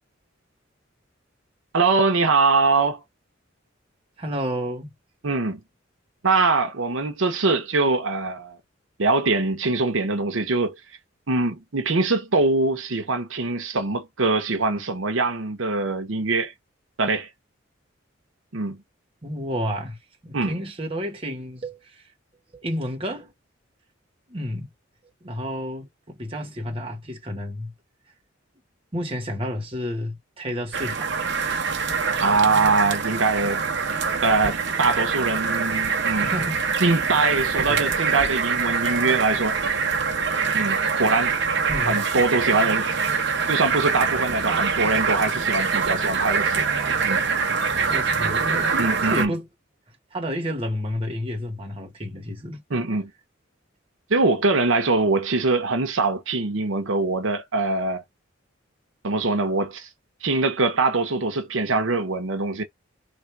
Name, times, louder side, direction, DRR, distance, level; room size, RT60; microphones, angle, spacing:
voice 1, 1.7-3.0 5.2-5.6 6.2-8.6 9.0-10.8 11.3-16.5 17.0-17.3 18.5-18.8 20.3-20.6 32.2-33.6 34.2-36.3 36.8-39.6 40.5-41.3 41.9-42.9 43.5-46.7 47.0-47.2 48.8-49.3 52.7-53.1 54.1-58.0 59.0-59.9 60.2-62.6, right 3 dB, 90° right, 0.9 m, -23 dB
voice 2, 4.2-4.9 19.2-20.0 20.2-22.0 22.5-23.3 24.3-24.7 25.2-27.7 28.9-31.1 36.2-36.6 37.6-37.8 41.7-42.0 47.7-48.7 49.0-49.5 50.1-52.6, equal, 30° right, 1.2 m, -30 dB
sound 1, 30.7-49.3, right 5 dB, 60° right, 0.9 m, -24 dB
3.3 x 2.5 x 4.5 m
head